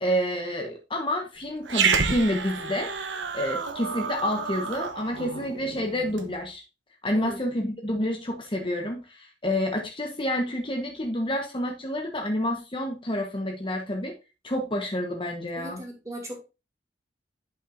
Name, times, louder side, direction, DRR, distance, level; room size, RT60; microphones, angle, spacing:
voice 1, 0.0-2.9 3.3-6.6 7.0-14.1 14.4-15.8, equal, 25° left, 3 dB, 1.2 m, -29 dB
Growling, 1.7-6.3, right 5 dB, 80° right, 1.0 m, -29 dB
voice 2, 15.6-16.4, right 1 dB, 15° right, 1 dB, 2.5 m, -38 dB
11.0 x 5.6 x 2.6 m, 0.28 s
head